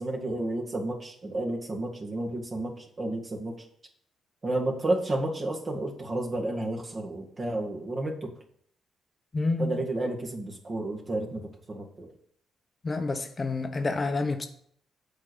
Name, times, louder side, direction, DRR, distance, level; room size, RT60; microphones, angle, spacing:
voice 1, 0.0-3.5 4.4-8.3 9.6-12.1, right 1 dB, 40° right, 1.9 m, -31 dB
voice 2, 9.3-9.9 12.8-14.5, left 3 dB, 35° left, 0.9 m, -28 dB
7.7 x 4.7 x 6.8 m
cardioid pair, 70°, 0 cm